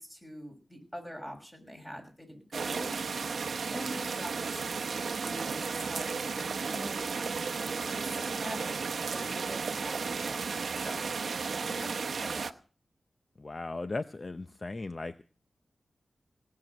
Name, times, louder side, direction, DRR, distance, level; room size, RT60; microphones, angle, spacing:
voice 1, 0.0-3.0 3.7-7.4 7.9-11.1 11.7-12.5, equal, 15° left, 3 dB, 6.1 m, -44 dB
sound 1, 2.5-12.5, right 5 dB, 75° right, 0.8 m, -34 dB
voice 2, 13.4-15.2, left 3 dB, 40° left, 11 dB, 0.7 m, -37 dB
18.0 x 7.7 x 7.8 m, 0.38 s
wide cardioid pair, 70°, 0 cm